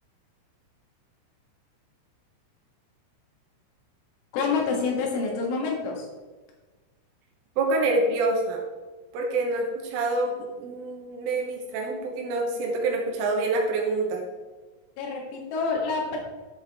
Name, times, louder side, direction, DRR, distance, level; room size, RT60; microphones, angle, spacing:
voice 1, 4.3-6.1 15.0-16.2, left 4 dB, 75° left, -1 dB, 4.1 m, -27 dB
voice 2, 7.6-8.6 9.1-14.3, right 2 dB, 80° right, 0 dB, 3.6 m, -26 dB
12.5 x 5.3 x 3.6 m, 1.3 s
omnidirectional pair, 5.8 m